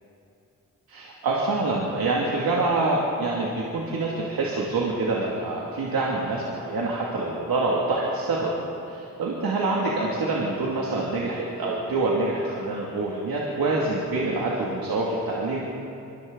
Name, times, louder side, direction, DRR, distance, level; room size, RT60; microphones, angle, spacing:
voice 1, 0.9-8.5 8.9-15.6, right 2 dB, 90° right, -4 dB, 2.5 m, -26 dB
28.5 x 23.0 x 4.0 m, 2.6 s
cardioid pair, 45°, 35 cm